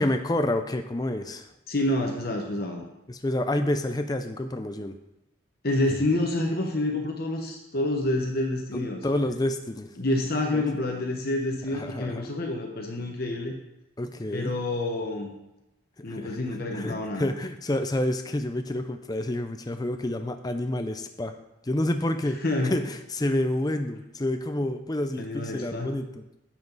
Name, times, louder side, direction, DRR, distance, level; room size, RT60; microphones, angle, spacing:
voice 1, 0.0-1.5 3.1-4.9 8.7-9.9 10.5-10.6 11.7-12.2 14.0-14.6 16.0-21.3 21.6-22.4 22.7-26.2, left 1 dB, 20° left, 7 dB, 0.5 m, -29 dB
voice 2, 1.7-2.8 5.6-9.0 10.0-13.5 14.3-15.3 16.0-17.3 22.4-22.8 25.2-25.9, left 1 dB, 45° left, 1 dB, 1.1 m, -28 dB
10.5 x 7.6 x 4.0 m, 0.92 s
head